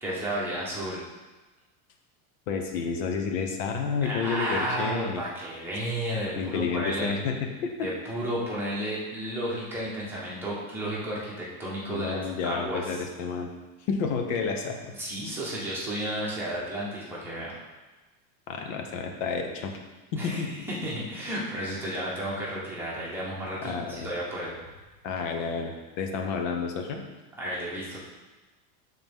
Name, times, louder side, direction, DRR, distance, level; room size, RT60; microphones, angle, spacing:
voice 1, 0.0-1.0 4.0-7.2 7.8-12.9 15.0-17.5 20.2-24.5 27.4-28.0, right 1 dB, 5° right, -7 dB, 1.2 m, -32 dB
voice 2, 2.5-5.2 6.4-7.9 11.9-13.5 13.9-14.9 18.5-19.7 20.1-20.5 23.6-24.1 25.0-27.0, left 5 dB, 70° left, 4 dB, 1.1 m, -30 dB
11.5 x 4.0 x 3.6 m, 1.2 s
cardioid pair, 175°, 40 cm